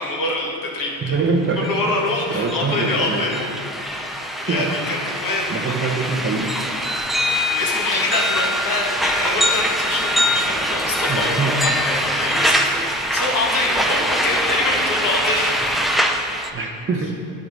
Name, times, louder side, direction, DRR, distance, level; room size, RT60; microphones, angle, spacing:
voice 1, 0.0-1.1 1.6-3.4 3.8-6.1 7.5-15.9, left 2 dB, 50° left, -2 dB, 1.6 m, -25 dB
voice 2, 1.0-1.9 2.3-3.2 4.5-4.7 5.5-6.5 11.1-11.6 16.5-17.1, right 4 dB, 30° right, 1 dB, 0.8 m, -23 dB
sound 1, 1.4-1.5 1.7-16.5, equal, ahead, 0.4 m, -23 dB
9.6 x 4.7 x 4.0 m, 2.5 s
supercardioid pair, 80°, 42 cm